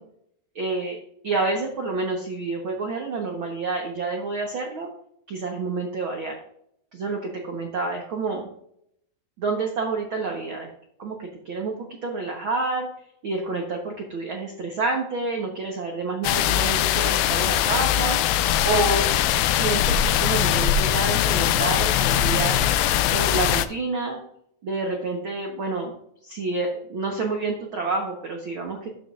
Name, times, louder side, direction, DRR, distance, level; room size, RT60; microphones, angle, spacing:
voice 1, 0.5-1.0 1.2-4.9 5.3-6.4 6.9-8.4 9.4-10.7 11.0-12.9 13.2-18.2 18.6-19.1 19.6-22.7 23.1-24.2 24.6-25.9 26.2-28.9, right 3 dB, 70° right, 1 dB, 1.2 m, -28 dB
sound 1, 16.2-23.7, left 11 dB, 85° left, 2.3 m, -21 dB
12.5 x 7.6 x 2.5 m, 0.70 s
omnidirectional pair, 4.1 m